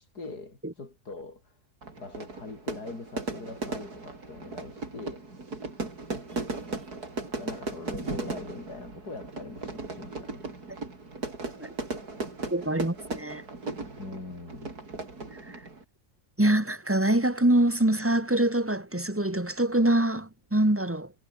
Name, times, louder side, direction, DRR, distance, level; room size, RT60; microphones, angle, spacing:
voice 1, 0.0-1.6 2.0-5.3 7.4-10.5 14.0-14.7, left 3 dB, 90° left, 4.9 m, -42 dB
Fire / Fireworks, 1.8-15.8, right 3 dB, 85° right, 5.0 m, -37 dB
voice 2, 12.5-13.4 15.5-15.6 16.4-21.1, right 1 dB, 10° right, 2.5 m, -24 dB
omnidirectional pair, 1.6 m